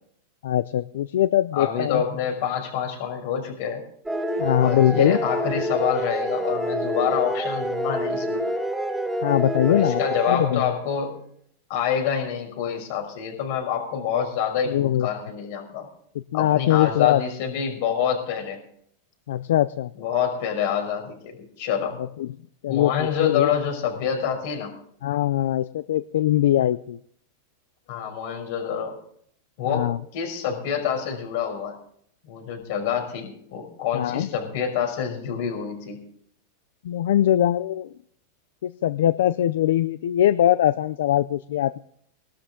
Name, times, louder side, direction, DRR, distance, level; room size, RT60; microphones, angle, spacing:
voice 1, 0.4-2.0 4.4-5.2 9.2-10.0 10.3-10.7 14.7-15.1 16.3-17.2 19.3-19.9 22.2-22.3 22.6-23.5 25.0-27.0 29.7-30.0 33.9-34.3 36.8-37.9 38.6-41.8, left 12 dB, 80° left, 15 dB, 0.5 m, -21 dB
voice 2, 1.5-3.8 4.6-8.4 9.6-11.2 11.7-15.9 16.3-18.6 20.0-22.0 22.7-24.7 27.9-28.9 29.6-31.8 32.2-36.0, left 8 dB, 60° left, 3 dB, 5.8 m, -27 dB
sound 1, 4.1-10.7, equal, 5° right, 2.3 m, -27 dB
19.5 x 12.5 x 3.8 m, 0.65 s
supercardioid pair, 140°, 0 cm